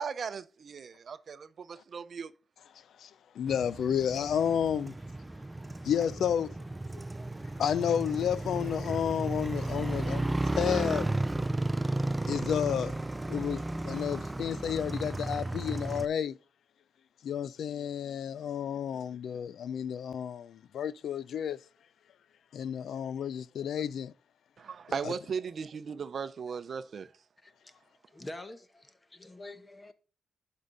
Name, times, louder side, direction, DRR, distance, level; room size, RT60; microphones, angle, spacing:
voice 1, 0.0-2.3 24.6-27.1, right 6 dB, 50° right, 0.6 m, -37 dB
voice 2, 3.0-4.9 5.8-6.5 7.6-11.1 12.3-12.9 13.3-16.4 17.2-21.6 22.5-24.1 25.0-25.1, left 8 dB, 80° left, 0.4 m, -31 dB
Motorcycle, 3.5-16.1, right 2 dB, 15° right, 0.4 m, -34 dB
voice 3, 27.4-29.9, left 1 dB, 20° left, 1.0 m, -47 dB
11.5 x 5.6 x 3.9 m
wide cardioid pair, 130°, 0 cm